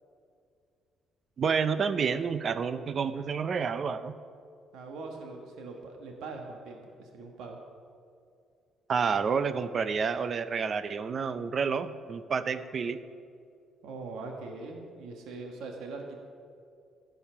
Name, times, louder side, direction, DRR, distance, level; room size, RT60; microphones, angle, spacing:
voice 1, 1.4-4.1 8.9-13.0, right 6 dB, 35° right, 13 dB, 0.5 m, -29 dB
voice 2, 4.7-7.6 13.8-16.2, right 3 dB, 85° right, 2 dB, 1.4 m, -42 dB
15.5 x 5.7 x 5.7 m, 2.3 s
cardioid pair, 145°, 0 cm